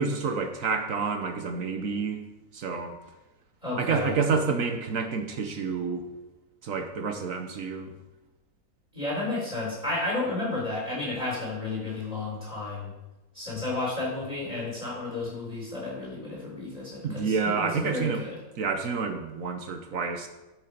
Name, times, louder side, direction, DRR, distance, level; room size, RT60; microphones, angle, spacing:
voice 1, 0.0-2.2 2.5-3.0 3.8-6.0 6.6-7.9 17.0-18.2 18.6-20.3, right 5 dB, 60° right, 6 dB, 1.2 m, -29 dB
voice 2, 3.6-4.1 8.9-12.9 13.3-18.4, left 2 dB, 20° right, -5 dB, 4.0 m, -32 dB
10.5 x 6.3 x 5.1 m, 1.0 s
omnidirectional pair, 1.7 m